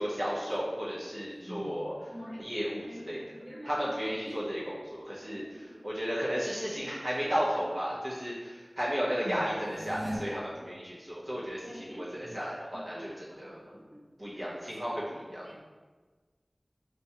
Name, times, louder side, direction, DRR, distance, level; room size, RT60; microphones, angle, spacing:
voice 1, 0.0-1.9 2.4-3.4 3.6-13.7 14.2-15.4, equal, 60° right, -7 dB, 0.7 m, -34 dB
voice 2, 1.4-1.8 2.1-2.6 2.8-4.6 5.3-5.8 6.8-7.0 9.2-9.4 11.6-12.4 12.7-14.5 15.4-15.6, equal, 20° right, -4 dB, 0.9 m, -46 dB
sound 1, 9.5-10.2, equal, 75° right, 1.0 m, -38 dB
5.7 x 2.2 x 2.7 m, 1.4 s
wide cardioid pair, 55°, 0 cm